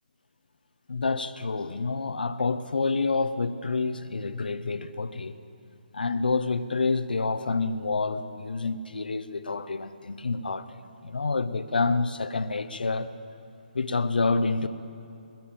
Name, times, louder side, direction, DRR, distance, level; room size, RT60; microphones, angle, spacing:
voice 1, 0.9-5.3 5.9-10.8 11.0-13.1 13.7-14.7, left 3 dB, 85° left, 0.7 m, -28 dB
21.5 x 7.2 x 8.8 m
hypercardioid pair, 155°, 5 cm